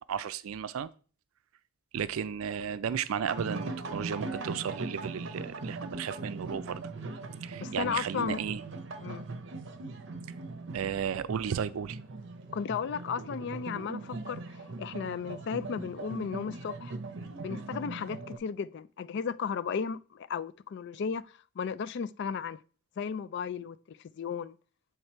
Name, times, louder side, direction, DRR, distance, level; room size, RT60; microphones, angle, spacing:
voice 1, 0.1-0.9 1.9-6.8 7.4-8.6 10.7-12.0, right 7 dB, 90° right, 0.4 m, -34 dB
sound 1, 3.2-18.4, right 3 dB, 60° right, 0.8 m, -40 dB
voice 2, 7.6-8.4 9.0-9.3 12.5-14.4 14.8-17.0 17.4-21.2 21.6-22.6 23.0-24.6, left 6 dB, 55° left, 0.3 m, -34 dB
8.0 x 3.3 x 4.5 m
head